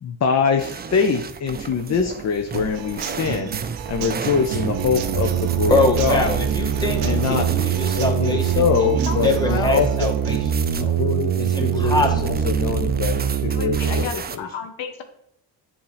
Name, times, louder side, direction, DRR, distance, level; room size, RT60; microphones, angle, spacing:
voice 1, 0.0-3.5 3.9-6.3 7.0-7.5 7.9-10.1 10.8-13.2 13.4-14.5, left 6 dB, 35° left, 4 dB, 0.7 m, -24 dB
sound 1, 0.6-14.4, right 6 dB, 20° right, 0.4 m, -33 dB
Human voice / Acoustic guitar / Drum, 2.5-10.5, right 12 dB, 90° right, 0.6 m, -34 dB
sound 2, 4.5-14.0, right 8 dB, 55° right, 0.8 m, -23 dB
voice 2, 5.7-10.4 10.7-10.9 11.5-12.5, left 2 dB, 10° left, 1 dB, 1.5 m, -24 dB
voice 3, 8.8-9.8 13.5-15.0, left 6 dB, 75° left, 6 dB, 0.9 m, -32 dB
7.9 x 2.9 x 4.9 m, 0.74 s
supercardioid pair, 60°, 46 cm